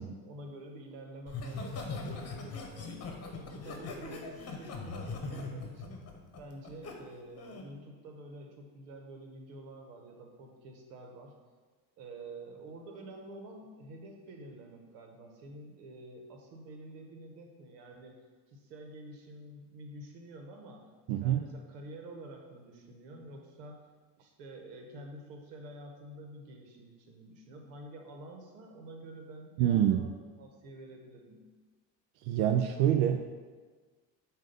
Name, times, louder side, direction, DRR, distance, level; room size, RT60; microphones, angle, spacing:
voice 1, 0.0-3.1 3.3-6.0 6.4-11.3 12.0-18.1 18.5-20.8 21.2-23.8 24.2-30.1 30.4-31.4, right 1 dB, 85° right, 2 dB, 1.2 m, -48 dB
Laughter, 1.3-6.9 7.4-7.7, left 3 dB, 30° left, 1.1 m, -40 dB
voice 2, 21.1-21.4 29.6-30.1 32.2-33.2, right 10 dB, 65° right, 6 dB, 0.5 m, -26 dB
7.5 x 2.6 x 5.1 m, 1.4 s
supercardioid pair, 95°, 48 cm